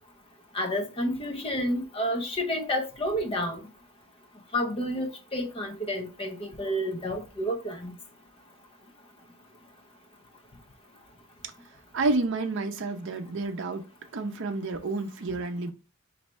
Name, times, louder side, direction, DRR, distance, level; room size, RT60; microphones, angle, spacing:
voice 1, 0.5-3.6 4.5-8.0, equal, 25° left, 0.6 m, -30 dB
voice 2, 11.9-13.8 14.1-15.7, right 3 dB, 55° right, 0.5 m, -29 dB
3.2 x 2.6 x 4.2 m
head